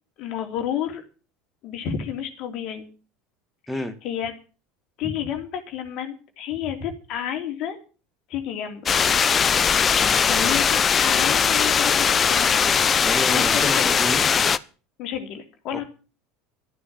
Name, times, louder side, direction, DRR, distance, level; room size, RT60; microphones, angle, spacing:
voice 1, 0.2-1.0 1.6-2.9 3.7-4.3 5.0-7.8 8.3-8.9 10.0-12.7 13.3-14.0 15.0-15.8, left 9 dB, 45° left, 5 dB, 3.1 m, -31 dB
sound 1, 8.9-14.6, left 7 dB, 30° left, 0.7 m, -20 dB
voice 2, 10.0-10.6 13.0-14.4 15.7-15.8, equal, ahead, 7 dB, 2.2 m, -31 dB
13.5 x 9.6 x 7.6 m, 0.36 s
figure-of-eight pair, 70°, 0 cm